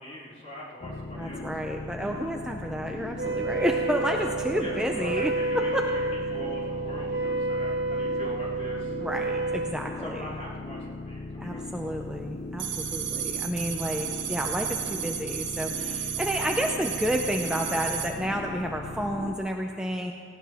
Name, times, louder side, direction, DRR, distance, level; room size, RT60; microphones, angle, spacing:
voice 1, 0.0-1.4 4.6-8.9 10.0-11.9, left 1 dB, 35° left, -6 dB, 3.6 m, -41 dB
sound 1, 0.8-19.4, left 2 dB, 55° left, 0.7 m, -39 dB
voice 2, 1.2-5.9 9.0-10.3 11.4-20.1, equal, 5° right, 2 dB, 0.6 m, -30 dB
Wind instrument woodwind instrument, 3.1-9.8, right 3 dB, 70° right, 1.1 m, -30 dB
sound 2, 12.6-18.1, right 9 dB, 85° right, 1.4 m, -33 dB
19.0 x 17.0 x 3.6 m, 2.3 s
head